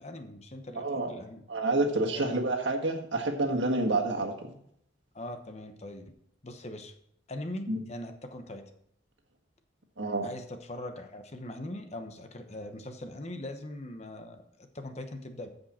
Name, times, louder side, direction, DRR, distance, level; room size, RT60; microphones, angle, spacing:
voice 1, 0.0-1.4 2.1-2.4 5.1-6.1 6.4-6.9 7.3-8.6 10.2-14.4 14.7-15.5, left 1 dB, 35° left, 6 dB, 1.0 m, -41 dB
voice 2, 0.7-1.1 1.5-4.3 7.7-7.8 10.0-10.3, right 2 dB, 70° right, 2 dB, 1.6 m, -28 dB
15.0 x 5.3 x 4.3 m, 0.70 s
head